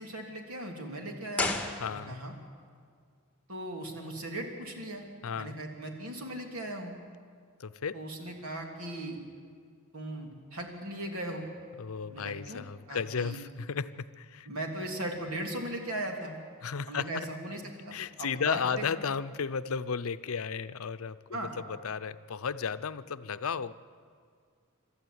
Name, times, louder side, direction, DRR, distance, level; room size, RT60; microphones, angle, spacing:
voice 1, 0.0-1.6 1.9-2.3 3.5-5.0 5.3-6.9 7.9-9.2 9.9-11.5 12.1-12.6 12.9-13.4 14.4-16.4 16.9-19.1 21.3-21.5, right 1 dB, 85° right, 1 dB, 3.3 m, -38 dB
sound 1, 1.3-2.4 2.7-2.8, left 2 dB, 5° left, 1.9 m, -33 dB
voice 2, 1.8-2.2 5.2-5.6 7.6-8.0 11.8-14.5 16.6-17.3 17.9-23.7, left 6 dB, 75° left, 13 dB, 0.6 m, -34 dB
26.0 x 13.0 x 9.4 m, 2.1 s
head